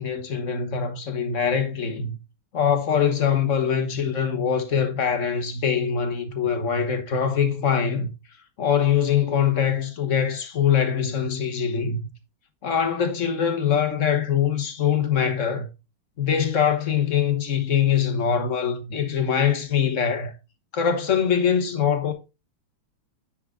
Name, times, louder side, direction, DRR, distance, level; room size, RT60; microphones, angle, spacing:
voice 1, 0.0-2.2 2.5-8.1 8.6-12.1 12.6-15.7 16.2-20.3 20.7-22.1, left 7 dB, 45° left, 1.2 m, -23 dB
9.5 x 4.8 x 3.8 m
omnidirectional pair, 2.2 m